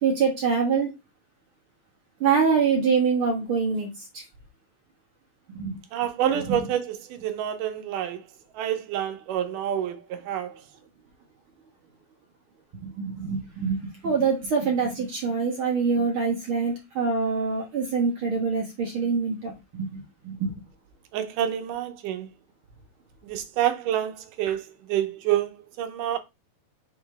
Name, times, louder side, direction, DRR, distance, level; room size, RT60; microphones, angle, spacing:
voice 1, 0.0-0.9 2.2-4.2 5.5-5.8 6.3-6.6 12.8-20.5, right 5 dB, 50° right, 1.8 m, -25 dB
voice 2, 5.9-8.2 8.6-10.0 10.3-10.5 21.1-22.3 23.2-24.6 24.9-26.2, right 11 dB, 75° right, 2.3 m, -27 dB
6.5 x 4.3 x 3.4 m
omnidirectional pair, 4.0 m